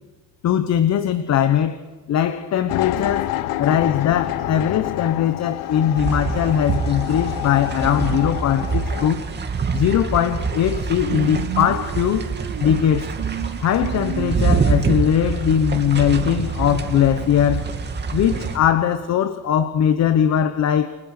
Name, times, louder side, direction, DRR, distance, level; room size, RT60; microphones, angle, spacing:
voice 1, 0.4-1.8 2.1-9.2 9.7-12.3 12.6-13.1 13.6-17.6 18.1-20.9, left 9 dB, 55° left, 1.0 m, -20 dB
sound 1, 2.7-9.1, left 15 dB, 85° left, 0.9 m, -28 dB
sound 2, 6.0-18.6, right 5 dB, 30° right, 2.6 m, -25 dB
sound 3, 10.3-10.4 10.6-14.7, right 17 dB, 75° right, 0.8 m, -32 dB
29.5 x 21.5 x 6.6 m
cardioid pair, 125°, 33 cm